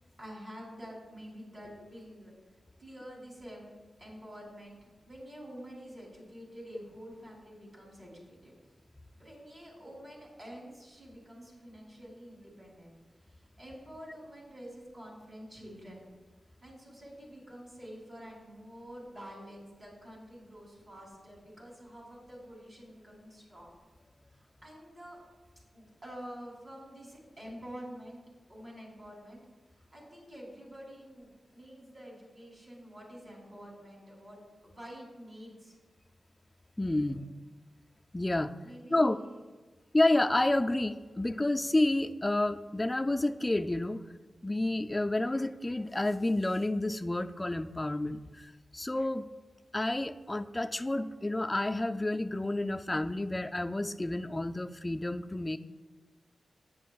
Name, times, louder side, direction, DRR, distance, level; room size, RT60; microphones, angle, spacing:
voice 1, 0.2-2.3 2.8-3.7 4.0-4.8 5.0-8.5 9.2-16.0 16.4-23.7 24.3-25.2 25.7-28.2 28.5-29.4 29.7-35.7 37.1-37.2 38.6-39.4, equal, 30° right, -2 dB, 3.0 m, -48 dB
voice 2, 36.8-37.3 38.1-38.5 38.9-39.2 39.9-44.0 44.4-49.3 49.7-55.6, left 2 dB, 15° left, 7 dB, 0.3 m, -30 dB
13.5 x 9.0 x 2.3 m, 1.3 s
wide cardioid pair, 170°, 0 cm